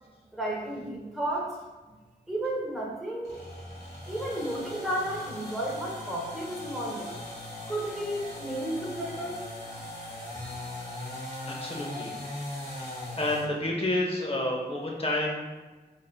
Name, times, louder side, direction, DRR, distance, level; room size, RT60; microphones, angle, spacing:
voice 1, 0.3-1.6 2.3-3.4 4.1-7.1 7.7-9.4, right 1 dB, ahead, -4 dB, 0.9 m, -32 dB
Chainsaw Cut Slow, 3.2-13.5, left 1 dB, 75° left, 1.5 m, -40 dB
voice 2, 11.5-12.1 12.7-15.3, left 1 dB, 35° left, -1 dB, 0.7 m, -30 dB
3.9 x 3.5 x 2.2 m, 1.2 s
wide cardioid pair, 105°, 17 cm